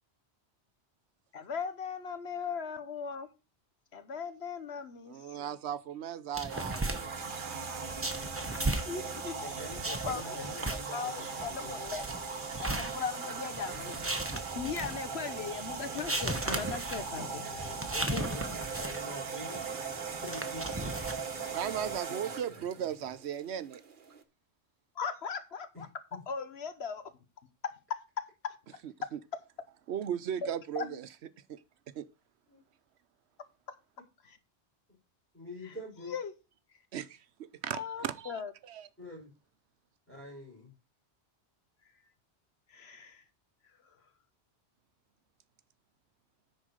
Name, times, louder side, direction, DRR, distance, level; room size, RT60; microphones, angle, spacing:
voice 1, 1.3-3.3 3.9-5.6 8.9-9.4 10.1-10.5 10.9-12.0 12.4-14.0 14.5-17.4 18.1-18.3 25.0-25.9 26.3-27.1 27.6-28.6 30.7-30.8 34.2-34.4 36.1-36.3 37.7-38.5 42.7-43.2, left 6 dB, 70° left, 1.3 m, -38 dB
voice 2, 5.1-8.0 21.5-23.8 28.8-29.2 29.9-31.1 31.5-31.6 31.9-32.1 36.9-38.9, right 9 dB, 75° right, 0.9 m, -37 dB
sound 1, 6.3-22.0, right 2 dB, 15° right, 1.0 m, -38 dB
sound 2, 6.5-24.2, right 5 dB, 50° right, 1.1 m, -40 dB
voice 3, 9.4-11.8 12.9-13.3 13.7-14.0 17.2-19.6 20.1-20.6 21.7-22.9 25.7-25.8 26.1-26.2 30.8-31.0 32.5-32.6 35.3-36.1 39.0-39.3 40.1-40.7, left 2 dB, 10° left, 5.1 m, -47 dB
9.9 x 4.5 x 6.5 m
omnidirectional pair, 1.1 m